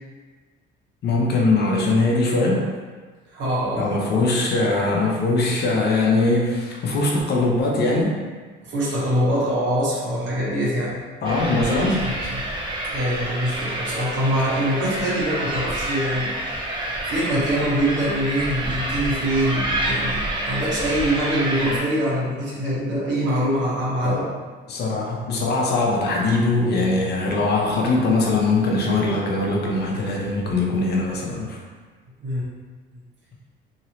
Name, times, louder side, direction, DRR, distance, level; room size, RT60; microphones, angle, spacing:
voice 1, 1.0-2.7 3.8-8.2 11.2-12.1 24.0-24.3 24.7-31.6, left 2 dB, 50° left, -2 dB, 0.7 m, -21 dB
voice 2, 3.3-4.3 8.6-11.0 12.0-12.5 12.9-16.6 17.1-24.3 32.2-32.4, equal, 60° right, -7 dB, 1.3 m, -24 dB
sound 1, 11.2-21.8, right 1 dB, 20° right, 0.6 m, -28 dB
2.9 x 2.8 x 2.9 m, 1.4 s
cardioid pair, 105°, 21 cm